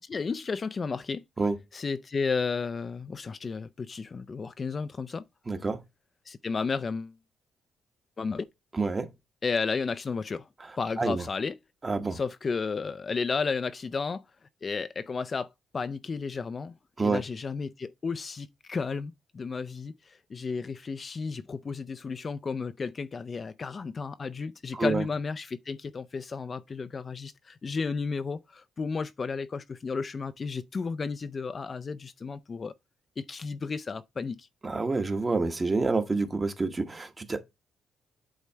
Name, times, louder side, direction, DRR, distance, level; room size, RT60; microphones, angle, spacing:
voice 1, 0.0-1.2 1.7-5.2 6.3-7.2 8.2-8.5 9.4-10.5 10.8-11.6 12.1-14.2 14.6-16.7 17.0-32.7 33.2-34.5, left 5 dB, 35° left, 0.4 m, -33 dB
voice 2, 5.5-5.8 8.7-9.1 10.6-10.7 11.0-11.2 11.8-12.2 17.0-17.2 24.7-25.0 34.6-37.4, right 3 dB, 25° right, 1.1 m, -28 dB
8.4 x 3.2 x 4.5 m
cardioid pair, 90°, 0 cm